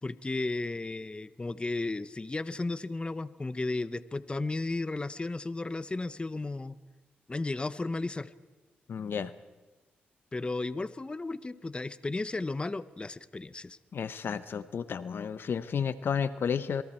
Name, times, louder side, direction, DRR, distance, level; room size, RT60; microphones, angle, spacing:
voice 1, 0.0-6.8 7.3-8.3 10.3-13.8, left 2 dB, 25° left, 14 dB, 0.9 m, -34 dB
voice 2, 8.9-9.3 13.9-16.8, left 7 dB, 65° left, 14 dB, 0.8 m, -32 dB
27.5 x 23.0 x 4.5 m, 1.2 s
cardioid pair, 65°, 4 cm